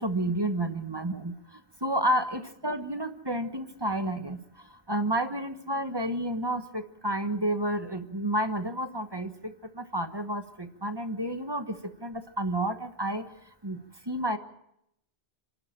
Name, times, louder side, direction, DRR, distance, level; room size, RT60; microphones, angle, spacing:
voice 1, 0.0-1.3 1.8-4.4 4.9-11.8 12.0-13.2 13.6-13.8 14.1-14.4, right 1 dB, 25° right, 8 dB, 1.2 m, -30 dB
26.0 x 12.5 x 8.8 m, 0.78 s
omnidirectional pair, 1.1 m